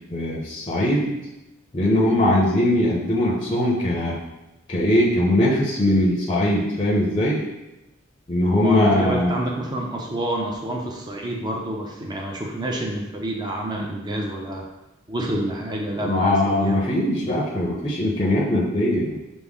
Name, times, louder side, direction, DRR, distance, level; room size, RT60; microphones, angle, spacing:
voice 1, 0.1-1.2 1.7-4.2 4.7-7.4 8.3-9.3 16.0-19.2, left 1 dB, 25° left, -3 dB, 0.6 m, -21 dB
voice 2, 8.6-14.7 15.1-16.9, right 1 dB, 20° right, -1 dB, 0.5 m, -28 dB
6.0 x 2.0 x 3.5 m, 0.99 s
head